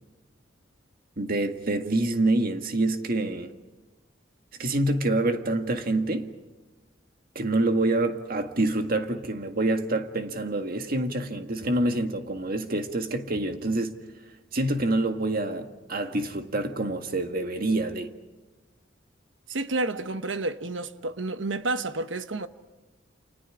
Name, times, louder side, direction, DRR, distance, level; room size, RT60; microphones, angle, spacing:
voice 1, 1.2-3.5 4.6-6.3 7.4-14.0 14.5-18.1, right 2 dB, 50° right, 1.9 m, -26 dB
voice 2, 19.5-22.5, right 2 dB, 85° right, 1.1 m, -30 dB
30.0 x 28.0 x 4.9 m
head